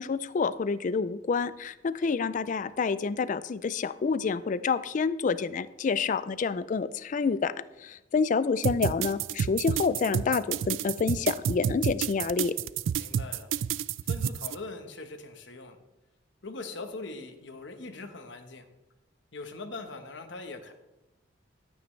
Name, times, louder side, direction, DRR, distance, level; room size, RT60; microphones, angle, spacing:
voice 1, 0.0-7.5 7.8-12.5, left 5 dB, 40° left, 15 dB, 0.3 m, -28 dB
sound 1, 8.6-14.5, right 8 dB, 75° right, 0.3 m, -29 dB
voice 2, 13.0-13.5 14.0-15.8 16.4-18.6 19.3-20.7, left 3 dB, 65° left, 7 dB, 1.1 m, -41 dB
13.0 x 8.6 x 3.2 m, 0.97 s
head